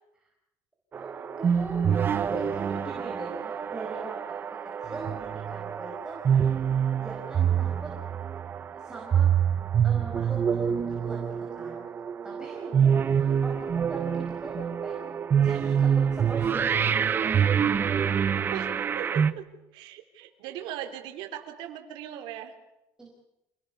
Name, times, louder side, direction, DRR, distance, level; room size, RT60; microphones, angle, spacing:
voice 1, 0.9-6.6 6.9-7.9 8.7-9.3 9.8-11.8 12.2-15.1 15.4-17.5 20.5-20.6 23.0-23.1, right 2 dB, 10° right, 0 dB, 5.1 m, -41 dB
sound 1, 0.9-19.3, right 8 dB, 25° right, 0.9 m, -26 dB
voice 2, 12.5-13.2 18.5-22.5, right 11 dB, 85° right, 5 dB, 3.9 m, -40 dB
28.5 x 20.0 x 7.0 m, 0.88 s
cardioid pair, 170°, 8 cm